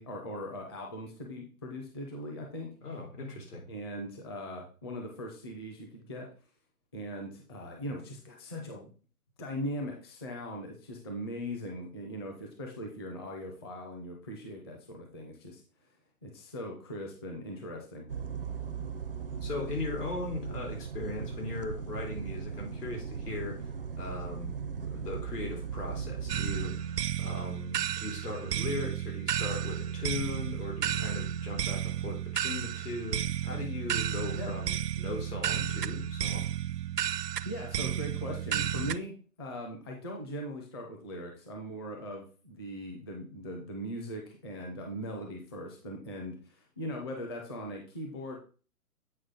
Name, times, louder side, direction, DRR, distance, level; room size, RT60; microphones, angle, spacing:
voice 1, 0.0-2.7 3.7-6.3 6.9-8.9 9.4-15.6 16.2-18.1 34.3-34.5 37.4-48.4, equal, 15° left, 1 dB, 0.6 m, -40 dB
voice 2, 2.8-3.6 19.4-23.7 24.0-36.5, left 2 dB, 75° left, 0 dB, 3.9 m, -38 dB
sound 1, 18.1-26.7, right 6 dB, 40° right, 0.4 m, -38 dB
sound 2, 26.3-39.0, right 10 dB, 85° right, 0.6 m, -33 dB
8.5 x 4.9 x 3.8 m, 0.38 s
hypercardioid pair, 150°, 47 cm